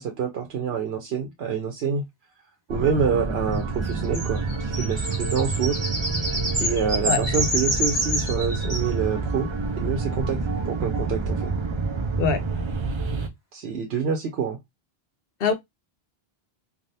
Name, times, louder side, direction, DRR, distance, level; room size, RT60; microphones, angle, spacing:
voice 1, 0.0-2.0 2.7-5.8 6.6-9.5 9.8-11.5 13.5-14.6, right 6 dB, 80° right, 0.9 m, -27 dB
sound 1, 2.7-13.3, right 3 dB, 40° right, 0.4 m, -28 dB
sound 2, 3.8-8.9, equal, 25° right, 1.4 m, -28 dB
voice 2, 7.1-7.4 12.2-12.4 15.4-15.5, left 6 dB, 70° left, 0.8 m, -23 dB
3.4 x 2.4 x 2.6 m
omnidirectional pair, 1.0 m